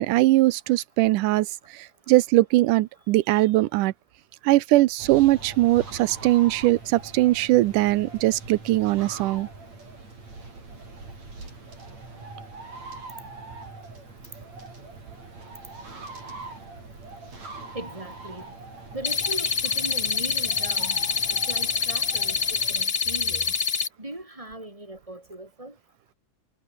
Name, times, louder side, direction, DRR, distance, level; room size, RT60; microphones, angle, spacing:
voice 1, 0.0-1.5 2.1-3.9 4.5-9.5, right 17 dB, 80° right, 2.3 m, -20 dB
sound 1, 5.0-22.8, right 3 dB, 55° right, 9.4 m, -42 dB
voice 2, 8.6-9.2 17.7-18.5 18.9-23.5 24.0-25.8, right 1 dB, 10° right, 5.4 m, -39 dB
sound 2, 19.0-23.9, left 6 dB, 75° left, 0.6 m, -26 dB
omnidirectional pair, 3.6 m